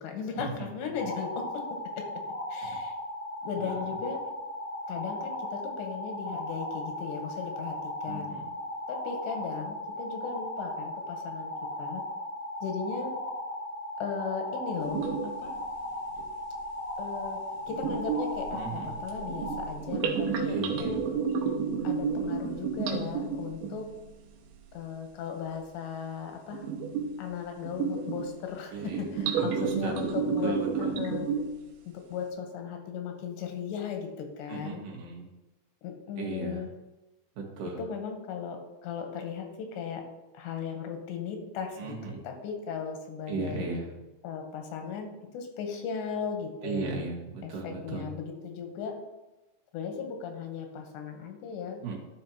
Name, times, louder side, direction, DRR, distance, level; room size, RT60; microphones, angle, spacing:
voice 1, 0.0-2.1 2.5-3.0 3.4-4.3 4.9-8.4 8.9-11.5 11.8-12.0 12.6-13.2 14.0-15.6 17.0-17.4 17.7-21.1 21.8-23.9 24.7-26.7 27.2-31.3 31.9-34.8 35.8-36.7 37.8-40.1 40.3-43.7 44.2-47.0 47.4-49.0 49.7-51.9, left 6 dB, 90° left, 4 dB, 3.3 m, -37 dB
sound 1, 0.9-19.7, left 1 dB, 60° left, 5.0 m, -37 dB
voice 2, 8.1-8.5 18.5-18.9 20.5-21.0 28.7-29.0 29.4-29.9 30.4-30.9 34.5-35.3 36.2-36.6 37.4-37.8 41.8-42.2 43.3-43.9 46.6-48.1 51.8-51.9, right 4 dB, 55° right, -2 dB, 2.9 m, -36 dB
sound 2, 14.8-15.5 16.1-16.2 17.7-24.0 26.5-27.2 27.6-28.4 28.8-31.7, right 6 dB, 75° right, 2.4 m, -31 dB
13.5 x 5.5 x 2.9 m, 1.1 s
omnidirectional pair, 5.0 m